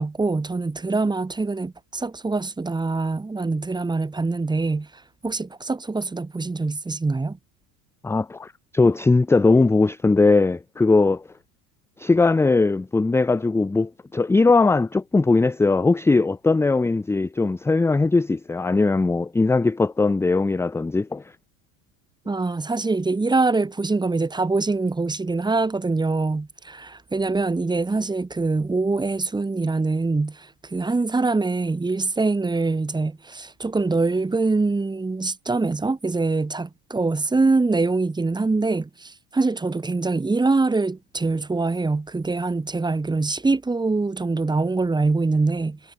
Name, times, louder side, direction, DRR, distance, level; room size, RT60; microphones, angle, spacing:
voice 1, 0.0-7.4 22.2-45.8, right 3 dB, 10° right, 1.0 m, -24 dB
voice 2, 8.0-11.3 12.0-21.3, left 3 dB, 5° left, 0.5 m, -20 dB
hypercardioid pair, 90°, 42 cm